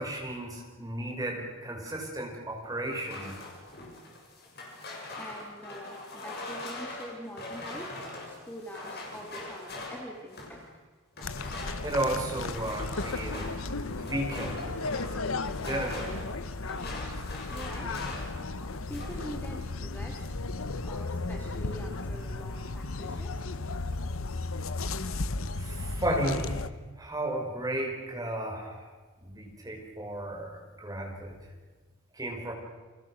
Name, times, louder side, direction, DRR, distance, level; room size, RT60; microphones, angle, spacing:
voice 1, 0.0-3.4 11.8-13.5 13.8-14.8 15.5-16.2 25.6-26.6 27.0-28.9 29.2-31.4 32.1-32.5, right 1 dB, 15° right, 1 dB, 5.2 m, -34 dB
sound 1, 2.9-10.6 11.1-18.4 18.7-19.3, left 2 dB, 50° left, 6.9 m, -42 dB
voice 2, 5.2-7.9 8.3-10.7 17.5-18.0 18.6-23.5, equal, 10° left, 0 dB, 2.6 m, -44 dB
sound 2, 11.2-26.7, left 3 dB, 85° left, 1.1 m, -35 dB
29.5 x 25.0 x 6.4 m, 1.3 s
head